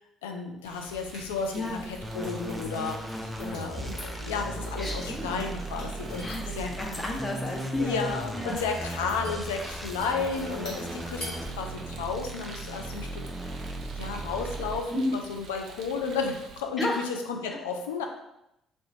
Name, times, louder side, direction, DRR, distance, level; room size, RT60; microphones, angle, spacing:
voice 1, 0.2-6.7 7.8-13.2 14.0-18.0, left 5 dB, 80° left, 3 dB, 0.4 m, -33 dB
Rain, 0.6-16.6, right 4 dB, 60° right, 0.4 m, -48 dB
sound 1, 0.8-11.5, left 1 dB, 60° left, 1.4 m, -45 dB
voice 2, 1.5-1.9 4.8-5.3 6.2-8.0 8.3-8.6 10.7-10.9 14.9-15.1 16.8-17.0, left 1 dB, 25° left, 0 dB, 0.8 m, -32 dB
sound 2, 2.0-15.0, right 1 dB, ahead, 0.5 m, -37 dB
3.2 x 2.9 x 2.7 m, 0.84 s
figure-of-eight pair, 50°, 0 cm